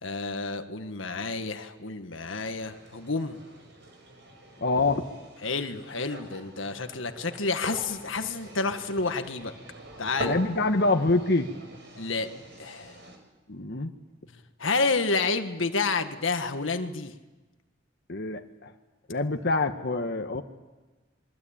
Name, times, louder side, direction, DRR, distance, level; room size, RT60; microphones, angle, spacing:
voice 1, 0.0-3.4 5.4-9.5 10.0-10.3 12.0-12.3 12.6-13.0 14.6-17.1, left 3 dB, 75° left, 7 dB, 1.6 m, -29 dB
sound 1, 2.4-13.2, right 1 dB, 65° right, 6.0 m, -43 dB
voice 2, 4.6-5.0 10.2-11.5 13.5-13.9 18.1-18.7 19.1-20.4, left 2 dB, 55° left, 5 dB, 1.5 m, -25 dB
27.5 x 23.0 x 8.9 m, 1.2 s
head